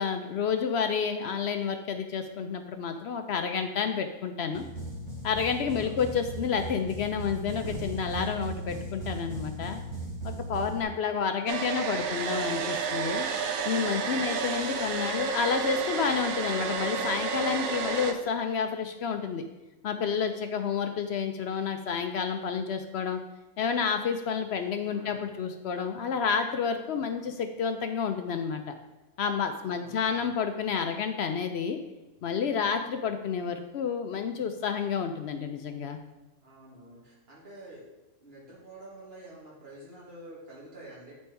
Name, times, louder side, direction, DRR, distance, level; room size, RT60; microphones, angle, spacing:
voice 1, 0.0-4.6 5.2-9.8 10.5-13.3 13.6-19.4 19.8-23.2 23.6-28.7 29.2-31.8 32.2-36.0, left 6 dB, 65° left, 7 dB, 0.7 m, -30 dB
sound 1, 4.5-10.8, right 1 dB, 70° right, 2.4 m, -38 dB
voice 2, 5.6-6.0 11.5-11.9 14.5-15.0 24.8-25.2 29.6-30.3 36.4-37.9 38.2-41.1, right 1 dB, 50° right, -6 dB, 2.1 m, -49 dB
Domestic sounds home sounds, 11.5-18.1, right 5 dB, 85° right, 1.1 m, -31 dB
8.6 x 4.3 x 4.5 m, 1.1 s
omnidirectional pair, 1.4 m